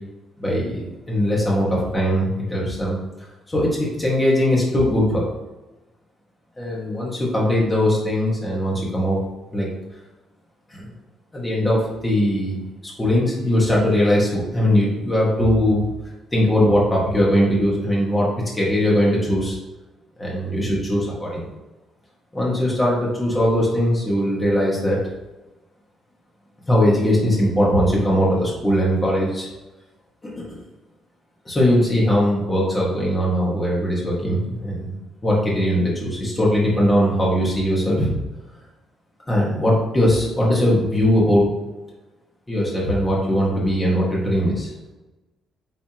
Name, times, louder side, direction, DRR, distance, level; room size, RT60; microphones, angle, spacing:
voice 1, 0.4-3.0 3.5-5.2 6.6-9.2 9.5-9.7 10.7-10.9 11.3-12.6 13.0-15.9 16.3-18.3 18.5-19.6 20.2-21.5 22.3-25.0 26.7-29.5 30.2-30.6 31.4-38.1 39.3-41.5 42.5-44.7, equal, 15° left, -5 dB, 1.8 m, -20 dB
8.9 x 4.1 x 3.1 m, 1.1 s
cardioid pair, 180°, 0 cm